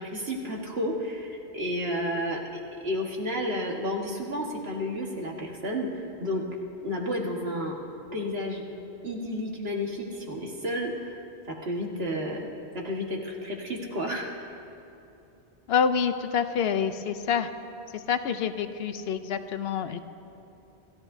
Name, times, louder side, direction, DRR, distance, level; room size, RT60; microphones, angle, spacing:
voice 1, 0.0-2.4 2.8-5.9 6.2-6.4 6.8-7.8 8.1-8.6 9.0-11.1 11.6-12.5 12.7-14.3, equal, 75° right, -1 dB, 1.8 m, -31 dB
voice 2, 15.7-17.5 18.1-20.0, left 7 dB, 75° left, 10 dB, 0.9 m, -27 dB
27.5 x 13.0 x 2.7 m, 2.7 s
omnidirectional pair, 1.1 m